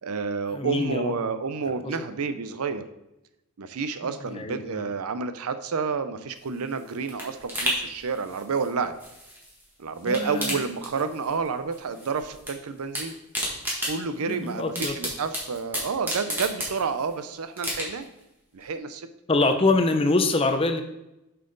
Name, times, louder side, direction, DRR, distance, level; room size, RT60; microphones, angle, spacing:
voice 1, 0.0-2.8 3.6-8.9 9.8-13.1 13.8-18.1 18.5-19.1, right 5 dB, 85° right, 11 dB, 0.6 m, -30 dB
voice 2, 0.5-1.1 1.8-2.0 4.0-4.8 10.0-10.6 14.3-15.0 19.3-20.8, left 3 dB, 25° left, 7 dB, 0.5 m, -25 dB
sound 1, 6.4-9.6 9.9-11.5 11.7-12.5 12.8-17.1 17.6-18.2 18.6-18.7, equal, 10° right, 1.5 m, -33 dB
7.6 x 5.6 x 3.9 m, 0.91 s
head